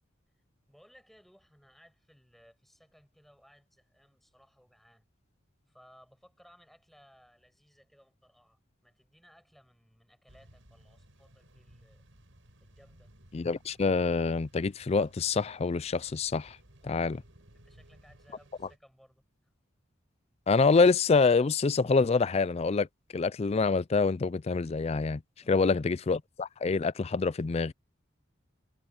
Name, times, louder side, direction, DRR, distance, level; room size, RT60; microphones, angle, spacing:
voice 1, 0.7-5.0 5.7-12.0 12.6-13.1 16.8-17.2 17.5-19.5, equal, ahead, 7.0 m, -61 dB
sound 1, 10.3-18.8, right 1 dB, 75° right, 5.7 m, -59 dB
voice 2, 13.3-16.6 16.8-17.2 20.5-22.9 23.1-25.2 25.5-27.7, left 4 dB, 30° left, 0.4 m, -26 dB
head